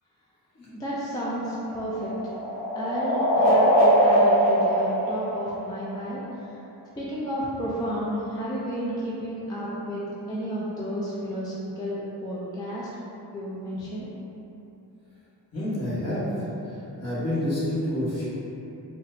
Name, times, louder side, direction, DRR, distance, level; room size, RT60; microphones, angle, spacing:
voice 1, 0.7-2.1 2.8-6.6 7.0-10.0 10.3-12.9 13.3-14.1, equal, 10° left, -8 dB, 0.3 m, -31 dB
sound 1, 1.2-6.0, equal, 85° left, 0.7 m, -22 dB
voice 2, 15.5-16.3 16.6-18.3, left 1 dB, 35° left, -10 dB, 1.2 m, -28 dB
4.2 x 2.0 x 2.5 m, 3.0 s
wide cardioid pair, 115°, 42 cm